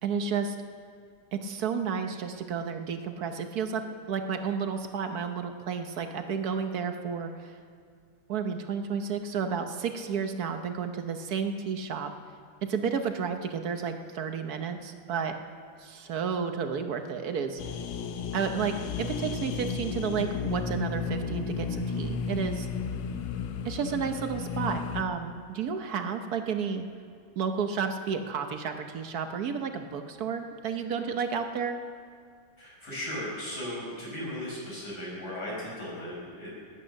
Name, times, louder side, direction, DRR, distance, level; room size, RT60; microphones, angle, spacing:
voice 1, 0.0-0.6 1.3-7.6 8.3-12.1 12.6-15.4 15.8-17.6 18.3-22.7 23.6-26.8 27.4-31.8, right 6 dB, 60° right, 6 dB, 1.2 m, -31 dB
sound 1, 17.6-25.0, left 5 dB, 85° left, 1.6 m, -33 dB
voice 2, 32.6-36.5, left 1 dB, 55° left, -5 dB, 5.7 m, -36 dB
18.5 x 9.1 x 6.4 m, 2.3 s
omnidirectional pair, 2.1 m